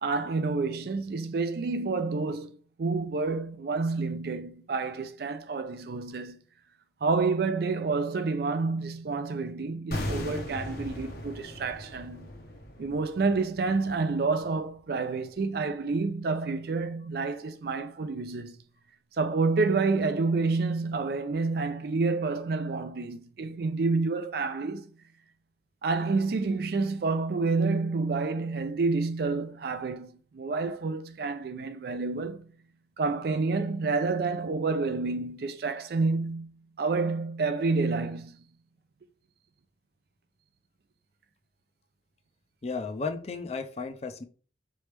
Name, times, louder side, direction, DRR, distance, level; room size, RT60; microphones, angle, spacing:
voice 1, 0.0-6.4 7.0-12.3 12.8-18.6 19.2-24.9 25.8-32.5 33.0-38.4, right 3 dB, 55° right, 0.4 m, -29 dB
sound 1, 9.9-14.9 15.2-15.3, left 1 dB, 55° left, 0.8 m, -38 dB
voice 2, 42.6-44.2, left 4 dB, 35° left, 0.5 m, -34 dB
4.2 x 3.2 x 3.3 m
head